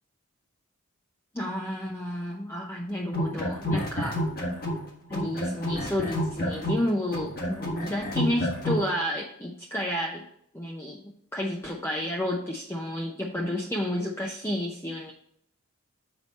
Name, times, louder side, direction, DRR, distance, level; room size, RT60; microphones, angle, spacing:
voice 1, 1.3-4.2 5.1-10.2 10.5-11.0 11.3-15.1, left 1 dB, 10° left, -1 dB, 0.6 m, -31 dB
sound 1, 3.0-4.8 5.1-8.9, equal, 45° left, 1.4 m, -29 dB
7.0 x 4.8 x 4.1 m, 0.68 s
head